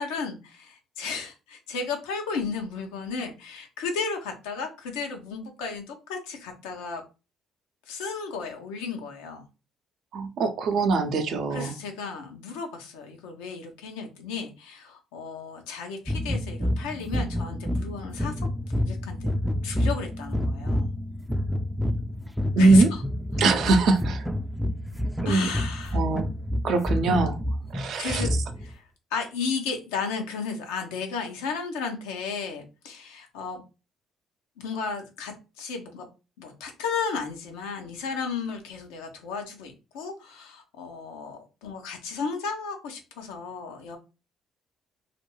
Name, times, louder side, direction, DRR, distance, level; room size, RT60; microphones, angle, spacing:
voice 1, 0.0-7.0 7.9-9.4 11.5-18.5 18.7-19.3 19.6-20.9 22.6-23.0 25.2-26.0 28.0-28.3 28.6-28.8 29.1-33.6 34.6-36.1 36.4-44.0, left 5 dB, 85° left, 0.7 m, -34 dB
voice 2, 10.1-11.8 22.6-22.9 23.4-24.2 25.2-25.5 25.9-26.3 26.6-27.4 27.7-28.2, right 3 dB, 65° right, 0.5 m, -22 dB
sound 1, 16.1-28.7, left 1 dB, 5° right, 0.4 m, -29 dB
2.5 x 2.2 x 3.0 m
supercardioid pair, 60°, 0 cm